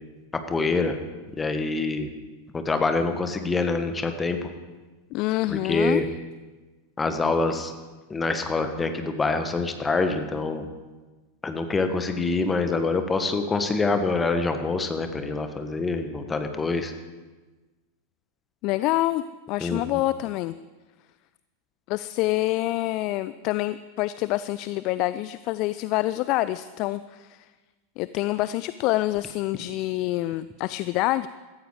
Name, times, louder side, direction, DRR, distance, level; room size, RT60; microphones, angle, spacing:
voice 1, 0.5-1.0 1.3-2.1 2.5-4.5 5.5-6.1 7.0-7.7 8.1-10.7 11.4-16.9 19.6-20.0, left 3 dB, 15° left, 7 dB, 1.4 m, -25 dB
voice 2, 5.1-6.0 18.6-19.2 19.5-20.5 21.9-27.4 28.0-31.3, left 17 dB, 40° left, 15 dB, 0.4 m, -26 dB
16.5 x 13.5 x 4.9 m, 1.2 s
figure-of-eight pair, 90°, 0 cm